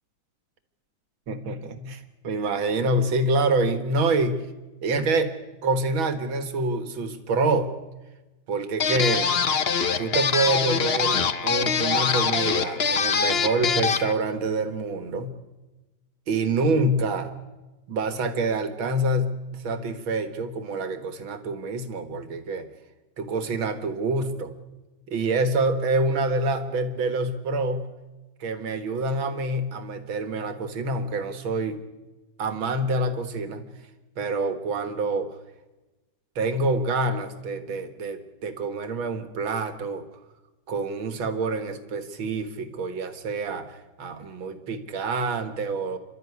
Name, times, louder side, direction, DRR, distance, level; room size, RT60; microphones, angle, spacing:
voice 1, 1.3-4.4 4.8-5.3 5.6-7.7 8.5-9.4 10.0-15.3 16.3-17.3 17.9-22.7 23.2-24.5 25.1-27.9 28.4-31.8 32.4-33.6 34.2-35.3 36.4-40.0 40.7-46.0, right 2 dB, 80° right, 9 dB, 2.4 m, -26 dB
sound 1, 8.8-14.1, left 6 dB, 45° left, 0.9 m, -24 dB
29.0 x 12.5 x 9.7 m, 1.1 s
omnidirectional pair, 2.2 m